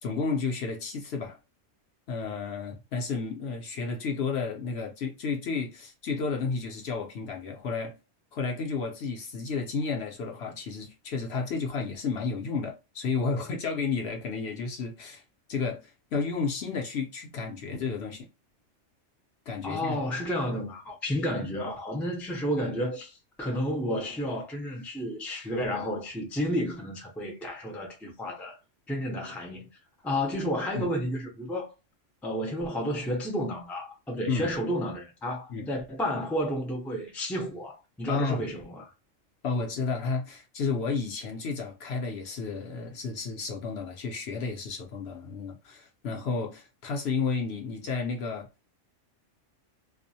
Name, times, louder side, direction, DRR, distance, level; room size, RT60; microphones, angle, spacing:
voice 1, 0.0-1.4 2.1-8.0 8.3-15.2 15.5-18.3 19.5-20.0 30.7-30.9 34.3-34.5 35.5-35.7 38.1-38.5 39.4-48.5, left 4 dB, 65° left, 0.8 m, -32 dB
voice 2, 19.6-28.6 28.9-29.7 30.0-31.7 32.2-38.8, equal, ahead, 0.4 m, -31 dB
2.5 x 2.0 x 2.6 m
omnidirectional pair, 1.3 m